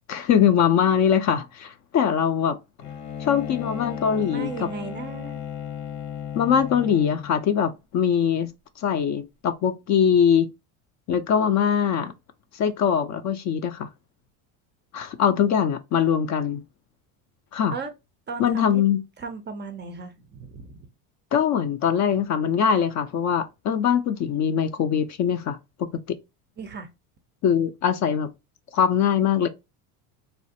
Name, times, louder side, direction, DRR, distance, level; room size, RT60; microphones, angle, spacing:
voice 1, 0.1-2.6 3.2-4.7 6.3-8.5 8.8-10.5 11.1-12.1 12.5-13.9 14.9-16.6 17.5-17.7 18.4-19.0 21.3-25.6 27.4-28.3 28.7-29.5, left 8 dB, 40° left, 0.4 m, -22 dB
Bowed string instrument, 2.8-7.5, left 8 dB, 80° left, 1.0 m, -35 dB
voice 2, 4.2-5.4 17.7-17.9 18.3-18.8 19.2-20.9 26.6-26.9, right 4 dB, 25° right, 0.4 m, -36 dB
3.2 x 2.4 x 2.7 m
supercardioid pair, 100°, 47 cm